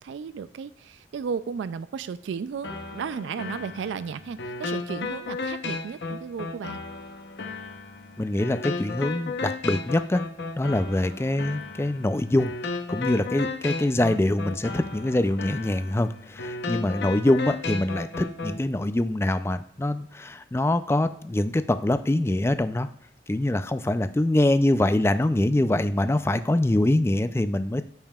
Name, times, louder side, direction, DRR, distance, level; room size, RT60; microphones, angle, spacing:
voice 1, 0.0-6.8 16.8-16.9, right 6 dB, 90° right, 14 dB, 0.3 m, -34 dB
sound 1, 2.6-18.6, left 3 dB, 75° left, 0.8 m, -34 dB
voice 2, 8.2-10.2 10.6-12.5 12.9-22.9 23.3-27.8, left 1 dB, 15° left, 11 dB, 0.3 m, -24 dB
13.5 x 5.4 x 2.3 m, 0.66 s
head